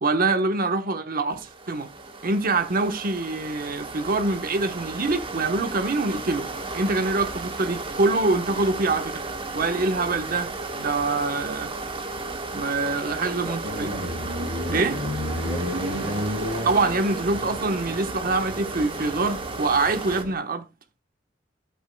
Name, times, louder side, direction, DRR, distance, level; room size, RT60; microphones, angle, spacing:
voice 1, 0.0-1.9 2.2-6.5 6.7-9.2 9.5-10.5 10.8-11.7 12.5-13.9 14.7-14.9 16.6-20.6, right 3 dB, 50° right, 1.1 m, -25 dB
sound 1, 1.3-20.2, right 3 dB, 30° right, 1.2 m, -34 dB
voice 2, 12.9-13.6 14.6-14.9 15.4-16.3, equal, 15° left, 1.6 m, -40 dB
sound 2, 13.6-20.3, equal, 80° right, 3.8 m, -32 dB
12.5 x 8.5 x 2.2 m
head